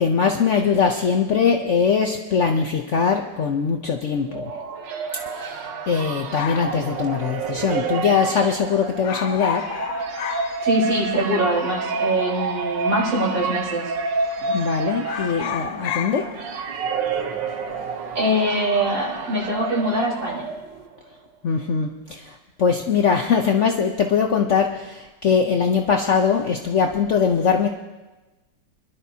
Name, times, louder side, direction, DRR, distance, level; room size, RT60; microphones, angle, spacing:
voice 1, 0.0-4.5 5.3-9.7 14.4-16.3 21.4-27.7, left 6 dB, 55° left, 3 dB, 0.9 m, -21 dB
sound 1, 4.0-21.0, right 4 dB, 85° right, 1.6 m, -29 dB
sound 2, 6.3-8.1 8.4-8.7 9.0-11.3 11.5-11.6 12.4-13.1 13.4-13.7 14.0-14.6 14.9-19.6 19.9-20.3, left 10 dB, 75° left, 1.1 m, -32 dB
voice 2, 10.6-13.9 18.1-20.5, equal, 50° right, -4 dB, 4.7 m, -23 dB
25.0 x 12.0 x 2.8 m, 1.1 s
omnidirectional pair, 1.9 m